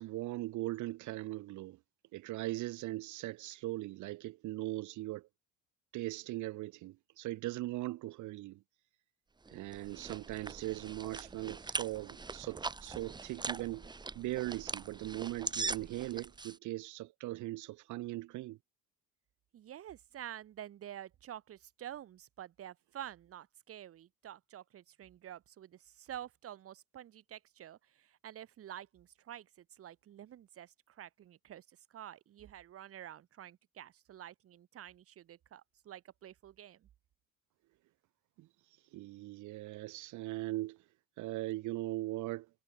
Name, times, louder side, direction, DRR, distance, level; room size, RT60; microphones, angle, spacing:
voice 1, 0.0-1.8 2.1-5.3 5.9-8.6 9.5-13.9 14.1-18.6 38.4-38.5 38.9-40.8 41.2-42.5, right 18 dB, 65° right, 1.4 m, -39 dB
sound 1, 9.5-16.6, right 4 dB, 15° right, 1.3 m, -41 dB
voice 2, 19.5-36.9, right 11 dB, 45° right, 3.4 m, -49 dB
cardioid pair, 155°, 32 cm